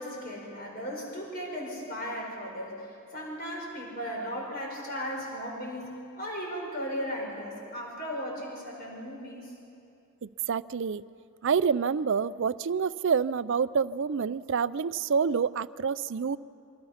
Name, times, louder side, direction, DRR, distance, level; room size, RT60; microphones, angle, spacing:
voice 1, 0.0-9.5, equal, 45° left, -1 dB, 4.8 m, -36 dB
voice 2, 10.2-11.0 11.4-16.4, right 6 dB, 60° right, 17 dB, 0.4 m, -27 dB
27.5 x 24.0 x 5.8 m, 2.6 s
head